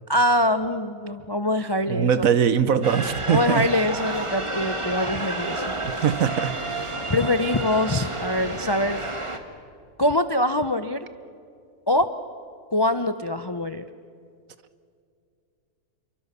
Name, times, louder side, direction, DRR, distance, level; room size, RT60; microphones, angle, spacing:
voice 1, 0.1-2.2 3.3-5.7 7.1-9.0 10.0-11.1 11.9-12.1 12.7-13.8, left 1 dB, 30° left, 0.4 m, -23 dB
voice 2, 1.9-3.7 6.0-6.6, right 8 dB, 60° right, 1.3 m, -21 dB
sound 1, 2.8-9.4, right 2 dB, 20° right, 1.7 m, -30 dB
27.5 x 24.0 x 6.8 m
omnidirectional pair, 1.7 m